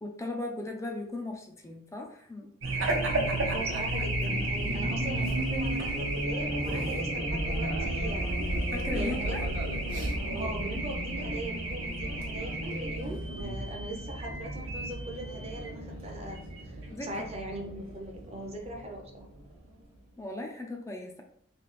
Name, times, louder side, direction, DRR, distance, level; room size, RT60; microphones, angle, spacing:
voice 1, 0.0-2.5 8.7-9.5 16.9-17.3 20.2-21.2, left 2 dB, 15° left, 2 dB, 0.5 m, -37 dB
Race car auto racing / Alarm, 2.6-19.6, right 1 dB, 85° right, 0.8 m, -32 dB
voice 2, 3.5-9.7 10.3-19.2, right 1 dB, 30° right, 1 dB, 0.6 m, -40 dB
3.3 x 2.9 x 3.2 m, 0.65 s
head